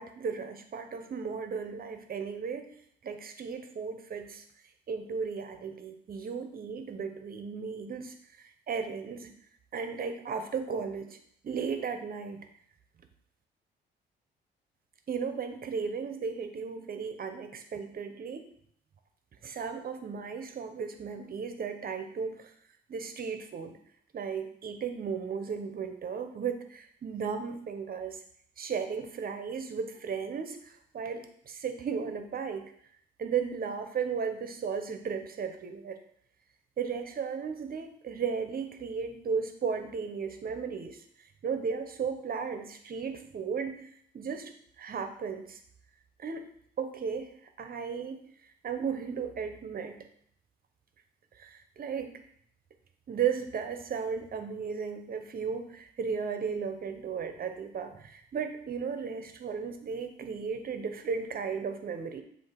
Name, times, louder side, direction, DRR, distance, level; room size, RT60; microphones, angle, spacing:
voice 1, 0.0-2.7 3.0-4.4 4.9-9.3 9.7-11.2 11.4-12.4 15.1-18.5 19.4-22.5 22.9-23.8 24.1-28.2 28.6-32.6 33.2-36.0 36.8-41.0 41.4-43.9 44.1-44.5 44.8-45.6 46.2-46.5 46.8-48.3 48.6-50.0 51.4-52.2 53.1-62.2, right 6 dB, 45° right, 7 dB, 1.0 m, -35 dB
7.6 x 2.9 x 5.9 m, 0.66 s
cardioid pair, 90°, 20 cm